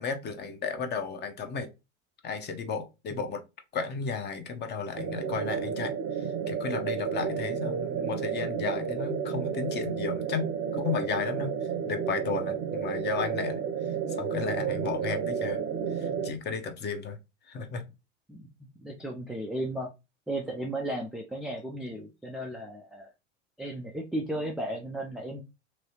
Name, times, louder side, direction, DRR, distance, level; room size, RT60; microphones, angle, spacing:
voice 1, 0.0-1.7 2.2-3.4 3.7-11.5 11.9-13.6 14.1-15.6 15.9-17.2 17.5-17.8, left 5 dB, 25° left, 0.8 m, -34 dB
sound 1, 4.9-16.3, right 7 dB, 35° right, 0.7 m, -31 dB
voice 2, 18.8-19.9 20.3-23.1 23.6-25.4, right 1 dB, ahead, 0.3 m, -35 dB
3.1 x 2.7 x 2.8 m
hypercardioid pair, 90°, 37 cm